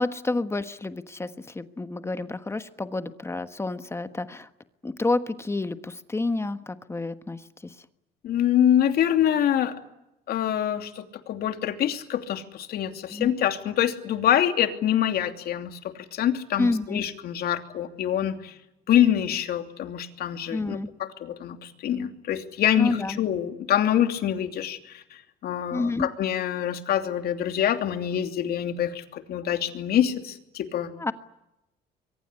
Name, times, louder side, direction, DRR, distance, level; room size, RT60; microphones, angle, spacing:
voice 1, 0.0-4.5 4.8-7.7 13.1-13.3 16.6-17.0 20.5-20.9 22.8-23.2 25.7-26.1 30.9-31.1, left 2 dB, 15° left, 10 dB, 1.3 m, -29 dB
voice 2, 8.2-9.7 10.3-18.5 18.9-30.9, left 10 dB, 65° left, 7 dB, 2.9 m, -25 dB
25.0 x 23.5 x 9.9 m, 0.87 s
cardioid pair, 110°, 17 cm